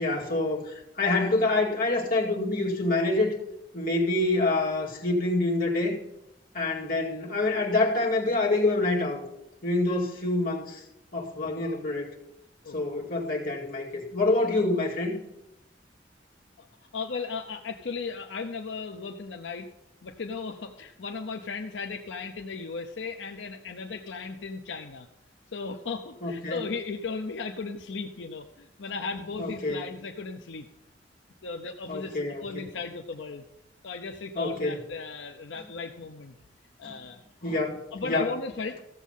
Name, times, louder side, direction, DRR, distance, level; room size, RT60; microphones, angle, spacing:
voice 1, 0.0-3.4 3.7-6.0 6.5-9.2 9.6-10.8 11.1-12.1 12.7-15.2 26.2-26.6 29.4-29.9 31.9-32.7 34.4-34.8 36.8-36.9 37.4-37.8 38.0-38.3, left 2 dB, 55° left, -2 dB, 2.2 m, -26 dB
voice 2, 16.9-19.7 20.0-25.1 25.5-30.7 31.4-33.4 33.8-36.3 36.8-37.2 37.5-37.6 37.9-38.8, left 4 dB, 85° left, 4 dB, 0.7 m, -36 dB
15.0 x 7.3 x 5.5 m, 0.88 s
head